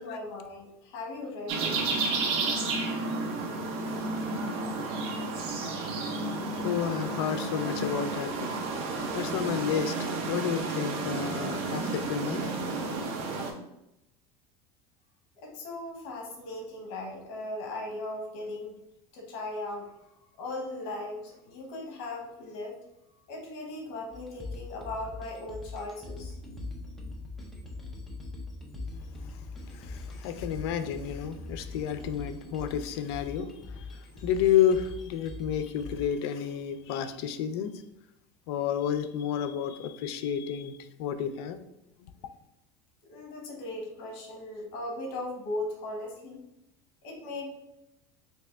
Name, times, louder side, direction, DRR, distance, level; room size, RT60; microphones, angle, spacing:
voice 1, 0.0-1.8 15.4-18.8 19.1-19.9 20.4-22.7 23.3-26.3 43.1-46.4 47.0-47.5, left 2 dB, 65° left, 1 dB, 0.9 m, -38 dB
sound 1, 1.5-13.5, right 3 dB, 50° right, 0.6 m, -32 dB
voice 2, 6.6-8.5 9.1-12.9 13.2-13.3 29.7-37.7 38.5-41.6, left 9 dB, 80° left, 10 dB, 0.4 m, -31 dB
sound 2, 24.1-36.1, left 3 dB, ahead, 0.5 m, -42 dB
3.3 x 2.7 x 3.3 m, 0.86 s
cardioid pair, 150°, 13 cm